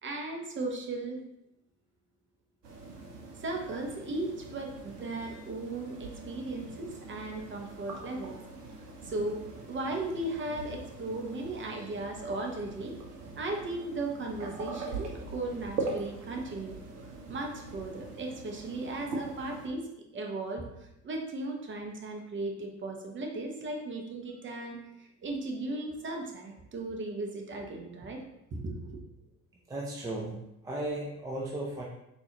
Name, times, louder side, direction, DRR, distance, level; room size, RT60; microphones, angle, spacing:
voice 1, 0.0-1.2 3.4-8.4 9.0-9.4 9.7-13.0 13.4-16.8 17.3-19.9 20.1-28.2 28.5-28.9, right 2 dB, 25° right, 2 dB, 0.8 m, -36 dB
sound 1, 2.6-19.7, right 3 dB, 90° right, 0.7 m, -42 dB
voice 2, 29.7-31.8, right 1 dB, 10° right, -3 dB, 0.3 m, -36 dB
3.9 x 2.6 x 2.9 m, 0.84 s
hypercardioid pair, 65°, 46 cm